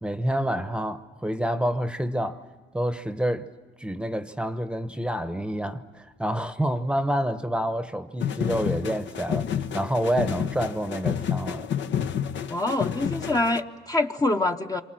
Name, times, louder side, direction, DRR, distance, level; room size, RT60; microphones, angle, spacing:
voice 1, 0.0-2.4 2.7-3.5 3.8-11.7, equal, 5° right, 1.0 m, -28 dB
sound 1, 8.2-13.6, left 8 dB, 65° left, 0.9 m, -29 dB
voice 2, 12.5-14.8, left 2 dB, 20° left, 0.9 m, -25 dB
27.0 x 23.5 x 7.6 m
cardioid pair, 90°, 20 cm